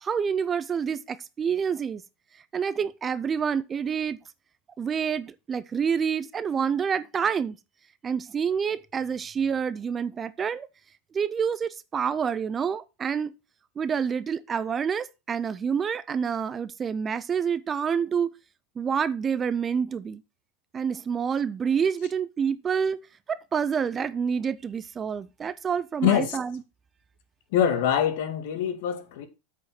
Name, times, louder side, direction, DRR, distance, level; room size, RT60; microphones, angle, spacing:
voice 1, 0.0-2.0 2.5-4.2 4.8-7.6 8.0-10.7 11.1-13.3 13.8-18.3 18.8-20.2 20.7-26.6, right 7 dB, 20° right, 0.5 m, -28 dB
voice 2, 26.0-26.4 27.5-29.3, left 9 dB, 65° left, 1.9 m, -24 dB
8.3 x 5.0 x 5.9 m
supercardioid pair, 140°, 0 cm